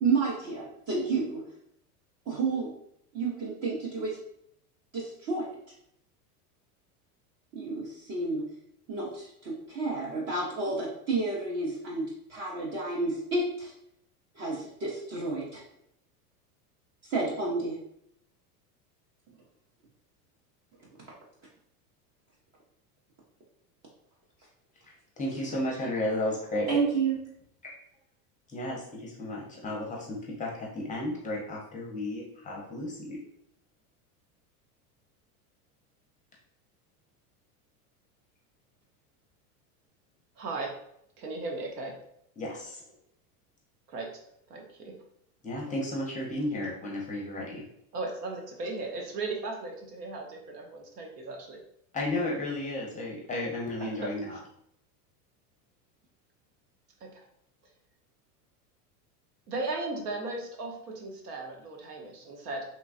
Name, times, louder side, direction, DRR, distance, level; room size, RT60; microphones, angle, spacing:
voice 1, 0.0-1.4 2.3-2.7 3.1-4.2 4.9-5.4 7.5-8.4 8.9-13.7 14.4-15.6 17.1-17.8 26.7-27.2, right 3 dB, 35° right, -5 dB, 0.7 m, -30 dB
voice 2, 25.2-26.8 28.5-33.2 42.4-42.8 45.4-47.6 51.9-54.4, left 1 dB, 15° left, -2 dB, 0.6 m, -33 dB
voice 3, 40.4-40.7 41.2-41.9 43.9-44.1 44.5-44.9 47.9-51.6 53.8-54.4 57.0-57.1 59.5-62.6, right 3 dB, 85° right, 1 dB, 0.9 m, -36 dB
3.1 x 2.2 x 2.5 m, 0.73 s
hypercardioid pair, 110°, 45 cm